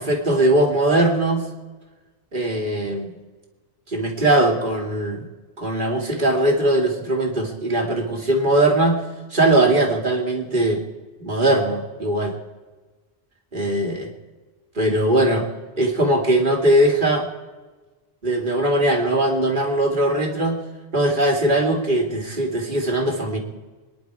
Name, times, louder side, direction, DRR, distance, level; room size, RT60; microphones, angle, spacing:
voice 1, 0.0-1.5 2.3-3.1 3.9-5.3 5.6-9.0 9.3-10.8 11.2-12.4 13.5-14.1 14.8-15.5 15.8-17.3 18.2-20.6 20.9-23.4, right 1 dB, 50° right, 3 dB, 2.6 m, -20 dB
26.0 x 10.5 x 4.8 m, 1.3 s
omnidirectional pair, 1.1 m